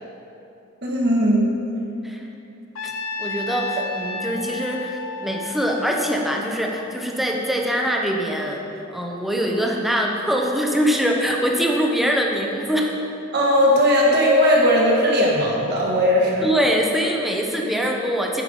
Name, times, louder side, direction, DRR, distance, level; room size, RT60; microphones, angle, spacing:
voice 1, 0.8-1.5 13.3-16.5, equal, 50° right, -3 dB, 1.6 m, -18 dB
Trumpet, 2.8-7.0, left 3 dB, 70° left, 0.6 m, -33 dB
voice 2, 3.2-8.6 8.9-13.0 16.4-18.4, equal, ahead, 0 dB, 0.8 m, -23 dB
9.3 x 5.7 x 5.3 m, 2.9 s
head